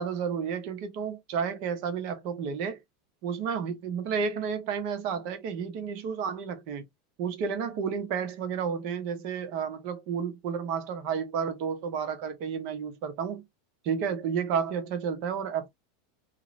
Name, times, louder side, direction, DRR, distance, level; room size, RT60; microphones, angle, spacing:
voice 1, 0.0-2.8 3.2-6.8 7.2-13.4 13.8-15.7, right 6 dB, 50° right, 0.9 m, -31 dB
3.0 x 2.8 x 2.7 m
supercardioid pair, 145°, 0 cm